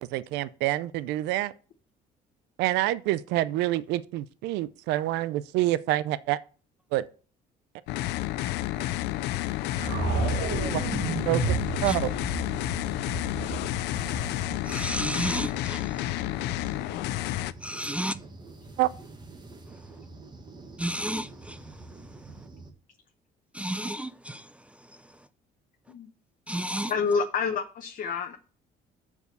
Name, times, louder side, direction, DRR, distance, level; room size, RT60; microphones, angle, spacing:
voice 1, 0.0-1.5 2.6-6.4 6.9-7.0 10.7-10.8 11.3-11.6 11.8-12.1 18.8-18.9, right 16 dB, 90° right, 0.5 m, -27 dB
sound 1, 7.9-17.5, left 16 dB, 85° left, 0.4 m, -30 dB
sound 2, 9.8-15.8, right 5 dB, 70° right, 1.8 m, -32 dB
sound 3, 13.9-22.7, right 2 dB, 25° right, 1.4 m, -46 dB
voice 2, 14.6-16.1 16.6-16.7 17.6-18.2 20.8-21.6 23.5-24.5 26.5-26.9, right 1 dB, 5° right, 0.4 m, -32 dB
voice 3, 26.9-28.4, left 5 dB, 55° left, 0.9 m, -28 dB
6.6 x 4.8 x 6.8 m
cardioid pair, 110°, 17 cm